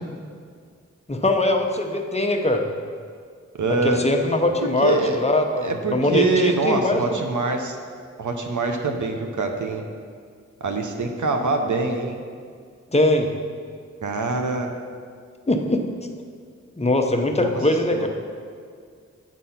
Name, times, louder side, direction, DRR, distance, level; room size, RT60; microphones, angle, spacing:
voice 1, 1.1-2.7 3.7-7.2 12.9-13.3 15.5-15.8 16.8-18.1, left 2 dB, 20° left, 3 dB, 0.9 m, -21 dB
voice 2, 3.6-4.0 4.8-5.2 5.6-7.8 8.2-9.8 10.6-12.2 14.0-14.7 17.4-17.5 17.9-18.1, right 3 dB, 80° right, 4 dB, 0.8 m, -24 dB
8.9 x 4.1 x 5.8 m, 2.1 s
cardioid pair, 45°, 30 cm